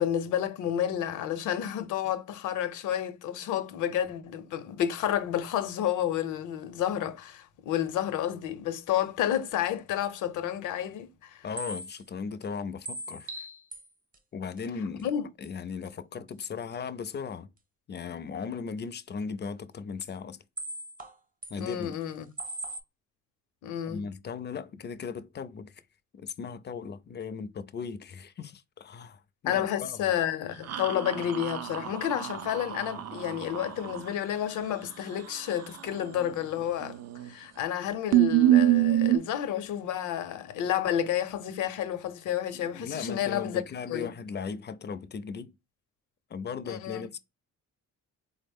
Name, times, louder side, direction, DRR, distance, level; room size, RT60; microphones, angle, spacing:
voice 1, 0.0-11.4 15.0-15.3 21.6-22.3 23.6-24.1 29.4-37.0 37.3-43.6 43.9-44.1 46.7-47.0, left 10 dB, 85° left, 0.7 m, -30 dB
voice 2, 11.4-13.4 14.3-15.1 15.4-17.5 17.9-20.4 21.5-22.0 23.9-25.8 26.1-30.0 42.5-45.5 46.3-47.2, left 5 dB, 35° left, 0.4 m, -37 dB
sound 1, 11.6-12.0 12.4-12.5 12.9-13.9 14.1-14.2 14.6-14.7 15.0-15.1 15.4-15.5 15.9-16.0 16.3-16.4 20.6-21.2 21.4-22.1 22.4-22.8, right 1 dB, 30° right, 0.8 m, -39 dB
sound 2, 30.7-34.1 36.8-37.3 37.6-37.7 38.1-39.2, right 14 dB, 55° right, 0.5 m, -26 dB
3.8 x 2.0 x 3.4 m
cardioid pair, 90°, 30 cm